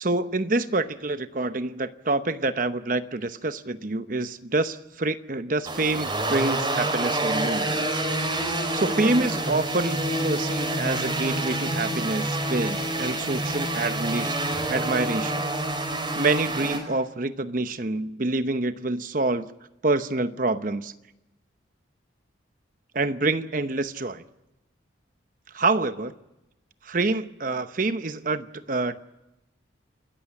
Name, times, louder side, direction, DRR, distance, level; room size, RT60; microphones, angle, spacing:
voice 1, 0.0-8.0 8.7-14.4 14.7-15.4 16.1-19.5 19.8-20.9 22.9-24.2 25.5-26.1 26.8-29.0, right 2 dB, 45° right, 11 dB, 0.9 m, -27 dB
sound 1, 5.6-16.8, right 1 dB, 25° right, 4.9 m, -27 dB
29.5 x 14.5 x 8.9 m, 0.94 s
head